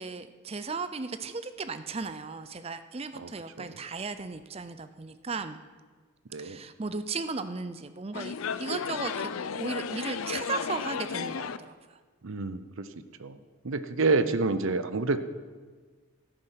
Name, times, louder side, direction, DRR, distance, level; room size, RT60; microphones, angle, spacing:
voice 1, 0.0-5.6 6.4-12.0, right 4 dB, 30° right, 11 dB, 0.5 m, -36 dB
sound 1, 8.1-11.6, left 6 dB, 80° left, 0.5 m, -34 dB
voice 2, 12.2-12.9 13.2-13.4 13.6-15.2, right 3 dB, 65° right, 12 dB, 0.7 m, -28 dB
13.5 x 10.0 x 5.8 m, 1.5 s
head